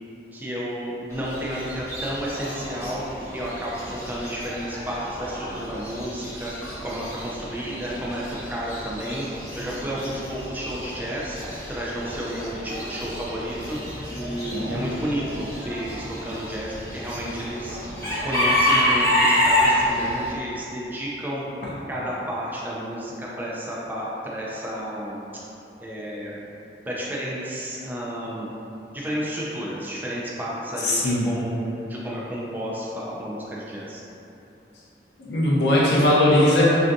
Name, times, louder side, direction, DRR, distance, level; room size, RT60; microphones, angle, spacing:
voice 1, 0.3-3.0 3.3-9.3 9.6-11.4 11.7-13.8 14.1-17.8 18.2-21.4 21.9-25.2 25.8-26.4 26.9-28.5 28.9-31.6 31.9-34.0, equal, 10° right, -6 dB, 0.3 m, -31 dB
Chicken rooster / Bird, 1.1-20.3, left 1 dB, 15° left, 0.7 m, -28 dB
voice 2, 14.5-14.9 30.8-31.3 35.2-36.6, left 1 dB, 70° left, -7 dB, 0.5 m, -20 dB
3.4 x 2.5 x 2.5 m, 2.9 s
head